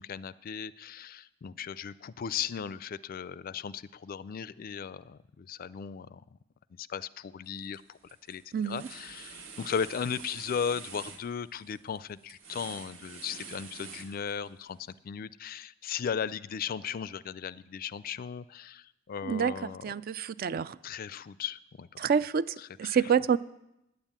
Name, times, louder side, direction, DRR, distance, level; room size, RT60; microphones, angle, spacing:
voice 1, 0.0-6.2 6.8-8.0 8.3-19.8 20.8-22.1 22.6-23.1, left 7 dB, 50° left, 0.4 m, -37 dB
sound 1, 7.4-7.8 8.1-14.6, right 5 dB, 90° right, 1.7 m, -47 dB
voice 2, 8.5-8.9 19.2-20.8 22.0-23.4, right 7 dB, 50° right, 0.4 m, -28 dB
9.7 x 9.1 x 8.7 m
head